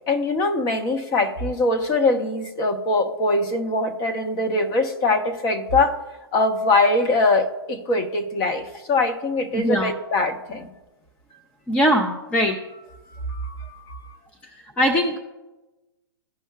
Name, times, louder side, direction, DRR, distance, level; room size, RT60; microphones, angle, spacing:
voice 1, 0.1-6.0 6.3-10.7 13.1-14.1, left 2 dB, 30° left, 5 dB, 1.0 m, -22 dB
voice 2, 9.5-9.9 11.7-12.6 14.8-15.2, equal, 10° left, 3 dB, 0.6 m, -20 dB
14.5 x 5.4 x 2.3 m, 1.1 s
hypercardioid pair, 125°, 13 cm